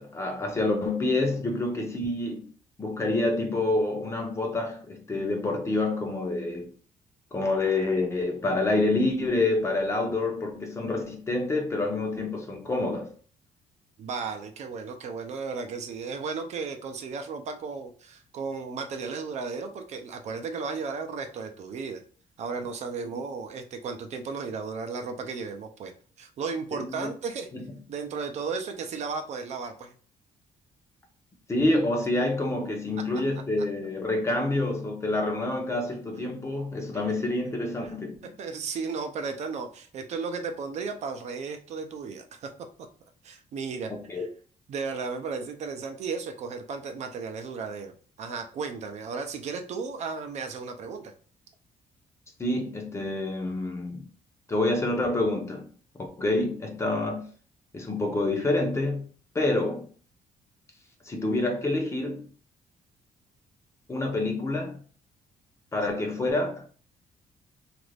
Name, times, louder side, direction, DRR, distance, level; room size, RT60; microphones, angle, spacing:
voice 1, 0.0-2.5 2.8-6.7 7.3-13.1 26.8-27.1 27.5-27.6 31.5-38.3 43.9-44.3 52.4-54.1 54.5-55.7 56.0-57.3 57.7-59.1 59.3-59.9 61.0-62.3 63.9-64.8 65.7-66.7, left 2 dB, 20° left, 0.6 m, -27 dB
voice 2, 14.0-22.0 22.4-25.9 26.2-27.5 27.9-29.9 33.0-33.1 37.9-38.0 38.4-42.5 43.2-44.3 44.7-47.9 48.2-51.1 65.8-65.9, right 5 dB, 50° right, 0.5 m, -34 dB
3.0 x 2.5 x 3.2 m
cardioid pair, 160°, 14 cm